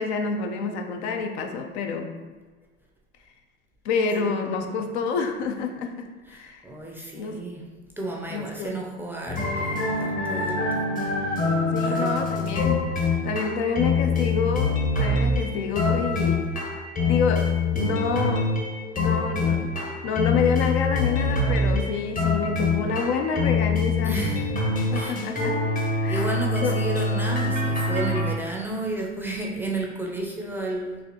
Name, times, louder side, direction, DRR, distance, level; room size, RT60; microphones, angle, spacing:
voice 1, 0.0-2.1 3.8-6.6 7.1-7.4 8.3-8.7 11.7-16.5 17.0-18.6 19.0-19.7 20.0-24.3 24.9-25.6 26.0-26.3 26.6-26.8, left 5 dB, 70° left, 4 dB, 0.6 m, -28 dB
voice 2, 4.3-4.8 6.3-7.6 8.0-10.9 11.3-12.3 24.0-24.5 24.9-25.1 26.1-31.0, right 2 dB, 5° right, -2 dB, 0.5 m, -32 dB
sound 1, 9.3-28.3, left 3 dB, 25° left, 0.7 m, -25 dB
4.1 x 2.5 x 2.9 m, 1.4 s
hypercardioid pair, 95°, 35 cm